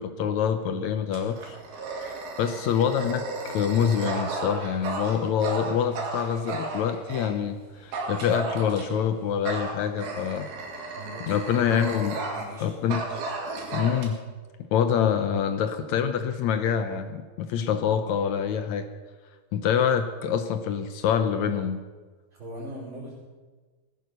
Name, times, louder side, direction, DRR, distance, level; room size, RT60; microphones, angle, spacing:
voice 1, 0.0-1.6 2.0-10.5 11.2-12.2 12.6-13.0 13.7-14.2 14.7-18.9 19.5-21.8, left 8 dB, 75° left, 9 dB, 1.7 m, -26 dB
Dog, 1.1-7.3 7.9-9.0 9.5-12.6 12.9-14.1, right 3 dB, 85° right, 4.0 m, -34 dB
voice 2, 11.0-11.8 12.2-12.8 22.3-23.1, right 1 dB, 35° right, -11 dB, 6.0 m, -40 dB
18.5 x 10.5 x 6.6 m, 1.4 s
omnidirectional pair, 4.1 m